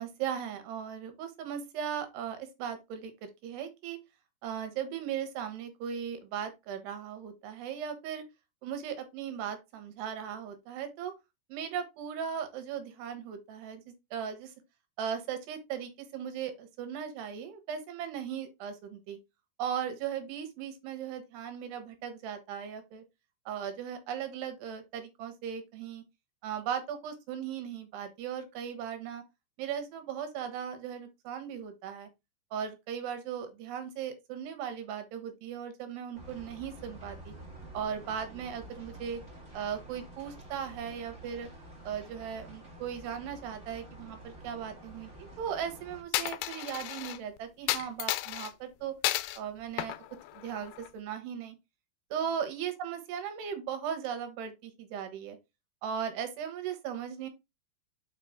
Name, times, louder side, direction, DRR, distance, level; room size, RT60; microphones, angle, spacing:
voice 1, 0.0-4.0 4.4-8.2 8.6-11.1 11.5-13.8 14.1-14.5 15.0-19.2 19.6-23.0 23.5-26.0 26.4-29.2 29.6-32.1 32.5-37.3 37.7-39.2 39.5-41.5 41.8-49.0 49.4-50.0 50.3-51.5 52.1-55.4 55.8-57.3, right 8 dB, 80° right, 3.3 m, -37 dB
sound 1, 36.1-46.0, right 1 dB, 25° right, 1.5 m, -49 dB
Coin (dropping), 46.1-47.2 47.7-48.5 49.0-49.4 49.8-50.9, left 16 dB, 85° left, 2.3 m, -32 dB
5.9 x 5.7 x 3.6 m
omnidirectional pair, 4.8 m